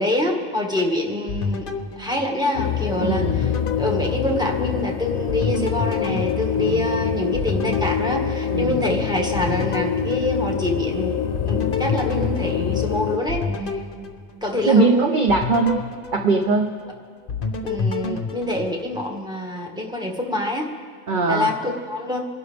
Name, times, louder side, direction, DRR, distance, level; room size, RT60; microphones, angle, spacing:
voice 1, 0.0-1.7 2.0-3.5 3.8-11.2 11.4-13.8 14.4-15.2 17.6-20.7 21.3-22.2, left 1 dB, 5° right, 0 dB, 1.6 m, -26 dB
sound 1, 1.3-2.9 3.3-4.9 5.3-8.9 9.3-10.9 11.3-14.8 15.3-16.9 17.3-19.2, left 4 dB, 45° left, 1.0 m, -30 dB
sound 2, 2.6-13.2, left 8 dB, 75° left, 1.0 m, -25 dB
voice 2, 3.0-3.4 6.7-6.9 8.5-8.8 14.6-15.8 16.1-16.7 21.1-21.5, right 4 dB, 45° right, 4 dB, 0.8 m, -20 dB
28.0 x 11.5 x 3.4 m, 2.1 s
omnidirectional pair, 1.5 m